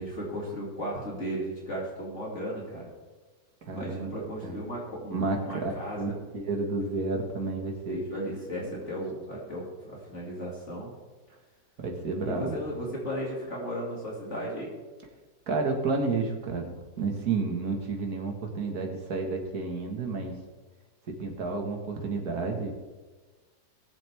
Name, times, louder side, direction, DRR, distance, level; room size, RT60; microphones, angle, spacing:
voice 1, 0.0-2.9 3.7-6.2 7.9-10.9 12.3-14.8, equal, 45° left, -4 dB, 2.7 m, -35 dB
voice 2, 3.7-4.6 5.1-8.0 8.6-9.0 11.8-12.6 15.5-20.4 21.1-22.7, right 3 dB, 70° right, 2 dB, 2.1 m, -31 dB
19.5 x 7.2 x 3.5 m, 1.3 s
omnidirectional pair, 1.7 m